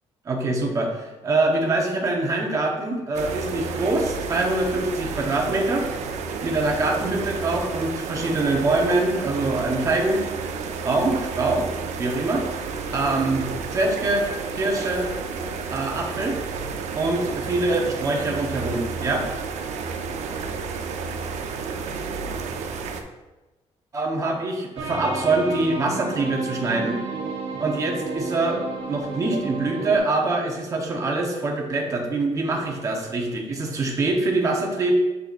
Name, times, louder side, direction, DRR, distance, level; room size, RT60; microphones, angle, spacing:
voice 1, 0.2-5.9 6.4-10.2 10.8-11.7 12.0-12.5 12.9-14.3 14.5-15.1 15.7-16.4 17.0-19.2 23.9-27.0 27.6-28.6 28.9-34.9, right 2 dB, 30° right, 1 dB, 1.0 m, -24 dB
sound 1, 3.1-23.0, right 5 dB, 80° right, 0.6 m, -31 dB
sound 2, 24.8-30.0, right 3 dB, 55° right, 1.1 m, -31 dB
6.8 x 6.6 x 2.5 m, 1.1 s
cardioid pair, 180°, 12 cm